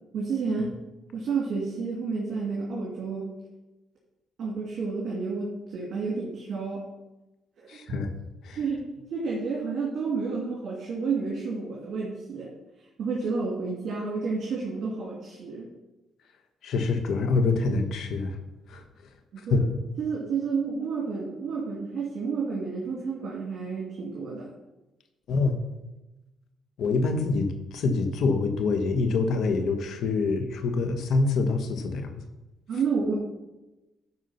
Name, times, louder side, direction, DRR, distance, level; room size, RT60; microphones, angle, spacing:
voice 1, 0.1-0.7 1.1-3.3 4.4-6.9 7.6-7.8 8.6-8.8 9.1-12.5 13.0-15.7 19.3-19.7 20.0-24.5 32.7-33.1, right 4 dB, 60° right, -4 dB, 2.7 m, -30 dB
voice 2, 7.7-8.1 8.4-8.6 16.6-18.4 18.7-18.8 19.5-19.7 25.3-25.6 26.8-32.1, left 3 dB, 70° left, 6 dB, 1.4 m, -25 dB
11.0 x 4.7 x 5.8 m, 1.0 s
cardioid pair, 90°, 0 cm